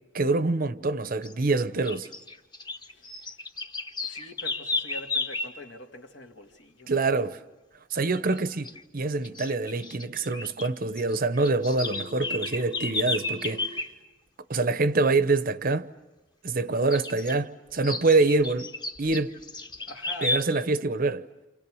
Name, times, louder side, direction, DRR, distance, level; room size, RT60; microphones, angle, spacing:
voice 1, 0.1-2.1 6.9-7.4 7.9-8.7 8.9-13.7 14.5-15.9 16.4-18.7 19.0-19.4 20.2-21.2, right 3 dB, 45° right, 0.8 m, -25 dB
sound 1, 1.2-1.4 1.8-5.6 8.1-8.4 8.6-8.8 9.2-10.7 10.9-13.9 16.9-17.4 17.8-20.4, left 2 dB, 25° left, 1.3 m, -33 dB
voice 2, 4.0-6.9 19.9-20.3, left 1 dB, 65° left, 2.4 m, -44 dB
Telephone, 11.8-13.8, equal, 15° right, 0.9 m, -45 dB
29.5 x 28.0 x 6.3 m
head